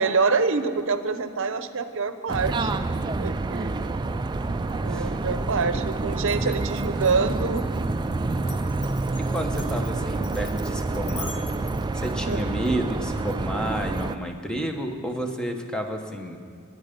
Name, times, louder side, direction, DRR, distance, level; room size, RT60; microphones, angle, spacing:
voice 1, 0.0-3.9 4.8-7.7 8.4-8.6 12.3-12.4, right 4 dB, 65° right, 11 dB, 0.8 m, -26 dB
sound 1, 2.3-14.2, right 3 dB, 20° right, 0.4 m, -28 dB
Glass, 6.3-12.7, left 5 dB, 35° left, 1.3 m, -44 dB
voice 2, 9.3-11.3 11.9-16.4, right 1 dB, 5° left, 3 dB, 1.0 m, -30 dB
21.5 x 8.9 x 5.2 m, 2.2 s
head